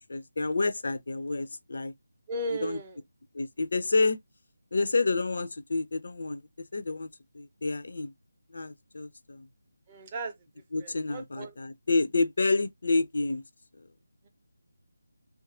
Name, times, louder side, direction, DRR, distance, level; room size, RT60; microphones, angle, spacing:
voice 1, 0.0-1.9 2.6-2.8 3.3-4.2 4.7-6.4 6.7-7.1 7.3-8.1 8.5-9.5 10.7-13.4 13.8-13.9, left 3 dB, 55° left, 0.3 m, -29 dB
voice 2, 2.3-3.0 9.9-10.3 10.8-11.6 12.9-13.0, right 1 dB, 25° right, 0.5 m, -36 dB
2.7 x 2.3 x 2.4 m
figure-of-eight pair, 155°, 0 cm